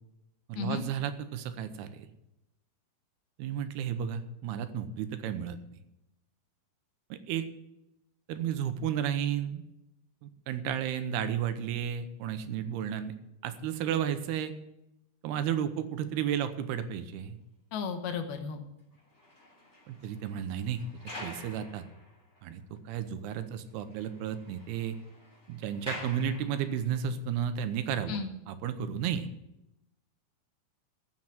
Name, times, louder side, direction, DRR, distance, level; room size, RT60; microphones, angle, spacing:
voice 1, 0.5-2.1 3.4-5.6 7.1-7.5 8.3-9.6 10.2-13.1 13.4-14.5 15.2-17.4 19.9-20.8 21.2-21.8 22.4-25.0 25.5-28.2 28.5-29.3, right 9 dB, 85° right, 10 dB, 2.8 m, -33 dB
voice 2, 17.7-18.6 28.1-28.3, left 5 dB, 75° left, 6 dB, 2.9 m, -34 dB
sound 1, 18.9-22.6 22.9-23.0 23.4-23.5 23.8-27.0 27.7-27.9, left 1 dB, 20° left, 3.2 m, -47 dB
15.0 x 6.1 x 7.7 m, 0.88 s
omnidirectional pair, 4.6 m